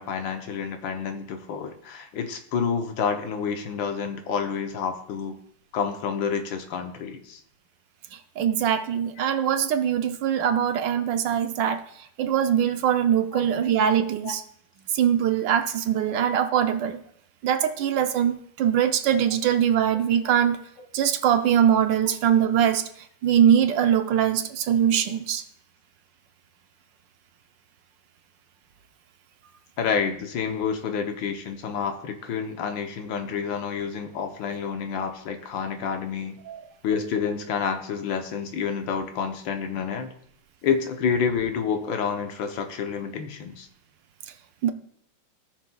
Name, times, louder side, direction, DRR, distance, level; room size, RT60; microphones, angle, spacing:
voice 1, 0.0-5.4 5.7-7.4 9.2-9.3 13.3-13.4 14.2-14.3 29.8-36.4 36.8-40.1 40.6-43.7, left 6 dB, 80° left, 6 dB, 1.6 m, -29 dB
voice 2, 8.1-11.8 12.2-14.4 14.9-17.0 17.4-20.6 20.9-22.9 23.2-25.4 36.5-36.6 44.6-44.7, right 9 dB, 75° right, 8 dB, 1.4 m, -22 dB
18.0 x 6.3 x 2.3 m, 0.68 s
omnidirectional pair, 2.0 m